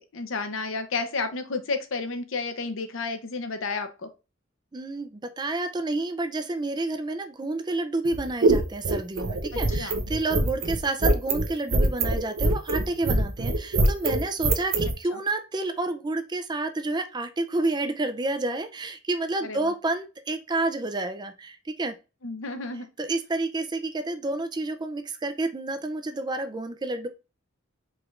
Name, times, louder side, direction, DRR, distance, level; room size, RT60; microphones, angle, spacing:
voice 1, 0.0-4.1 9.8-10.0 15.1-15.2 19.4-19.7 22.2-22.9, left 4 dB, 65° left, 8 dB, 0.7 m, -31 dB
voice 2, 4.7-21.9 23.0-27.1, right 2 dB, 20° right, 7 dB, 0.4 m, -29 dB
sound 1, 8.0-14.9, right 2 dB, 70° right, 0.8 m, -23 dB
4.8 x 3.2 x 2.4 m, 0.30 s
head